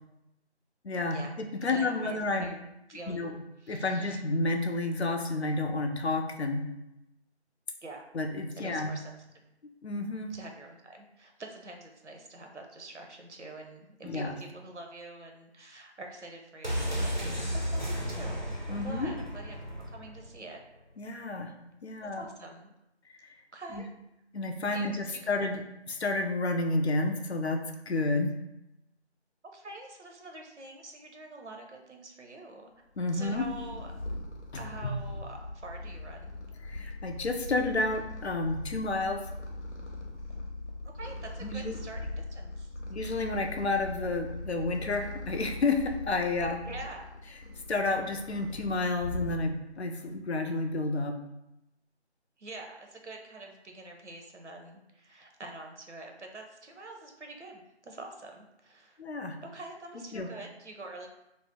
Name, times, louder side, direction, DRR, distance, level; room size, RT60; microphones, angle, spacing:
voice 1, 0.8-2.6 3.1-3.3 3.7-6.7 8.1-8.9 9.8-10.3 14.0-14.4 18.7-19.2 21.0-21.5 21.8-22.2 23.1-23.2 23.7-23.8 24.3-25.6 25.9-28.3 33.0-33.5 34.8-34.9 36.6-39.2 41.4-41.8 42.9-46.6 47.7-51.2 59.0-59.4 60.1-60.3, left 2 dB, 70° left, 5 dB, 0.5 m, -30 dB
voice 2, 1.7-2.5 2.9-3.3 3.6-4.2 7.8-8.1 8.6-9.2 10.3-19.6 19.9-20.6 22.2-22.7 23.5-23.9 24.7-25.6 29.5-32.7 33.1-33.9 34.6-36.3 40.8-42.7 46.6-47.1 52.4-59.0 59.4-61.1, right 2 dB, 90° right, 2 dB, 0.7 m, -46 dB
sound 1, 16.6-20.4 20.7-20.8, equal, 45° right, 0.4 m, -33 dB
Purr, 33.0-49.8, left 2 dB, 90° left, 0.9 m, -41 dB
2.6 x 2.0 x 3.6 m, 0.86 s
figure-of-eight pair, 165°, 34 cm